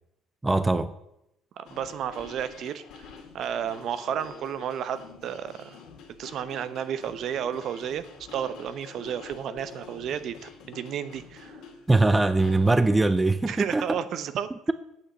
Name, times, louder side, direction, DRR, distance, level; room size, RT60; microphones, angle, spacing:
voice 1, 0.4-0.9 11.9-14.0, right 2 dB, 10° right, 13 dB, 0.5 m, -22 dB
sound 1, 1.6-12.8, left 5 dB, 70° left, 2.4 m, -47 dB
voice 2, 1.6-5.8 6.2-8.0 8.3-11.6 13.5-14.5, right 9 dB, 55° right, 13 dB, 0.8 m, -32 dB
8.5 x 6.4 x 8.0 m, 0.82 s
cardioid pair, 125°, 0 cm